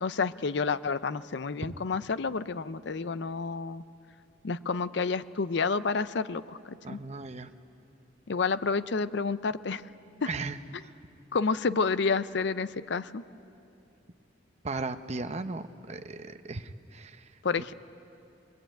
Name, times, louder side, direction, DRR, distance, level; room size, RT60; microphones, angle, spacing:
voice 1, 0.0-3.8 4.4-7.0 8.3-9.8 10.2-10.3 11.3-13.2 17.4-17.7, left 4 dB, 65° left, 14 dB, 0.6 m, -29 dB
voice 2, 6.8-7.5 10.3-10.6 14.6-17.3, right 3 dB, 40° right, 8 dB, 0.8 m, -36 dB
21.5 x 21.5 x 9.0 m, 2.7 s
head